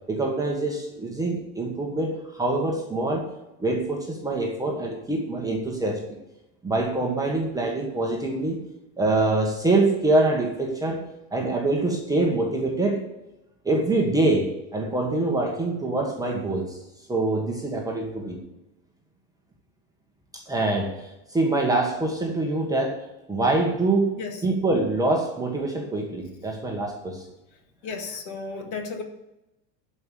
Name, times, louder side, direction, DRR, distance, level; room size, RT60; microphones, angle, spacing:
voice 1, 0.1-3.3 3.6-6.0 6.6-8.6 9.0-11.0 11.3-13.0 13.6-16.8 17.1-18.4 20.3-24.2 24.4-27.2, right 2 dB, 10° right, 0 dB, 1.4 m, -25 dB
voice 2, 27.8-29.0, left 4 dB, 40° left, 4 dB, 2.0 m, -33 dB
12.0 x 5.6 x 8.3 m, 0.95 s
supercardioid pair, 150°, 46 cm